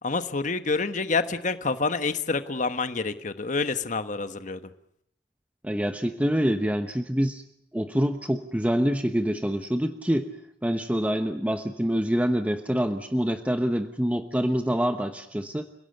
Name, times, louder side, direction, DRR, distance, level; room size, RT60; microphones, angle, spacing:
voice 1, 0.0-4.6, left 4 dB, 45° left, 10 dB, 1.3 m, -27 dB
voice 2, 5.6-7.4 7.7-10.3 10.6-15.7, equal, 10° right, 7 dB, 1.0 m, -26 dB
29.5 x 17.0 x 7.9 m, 0.73 s
head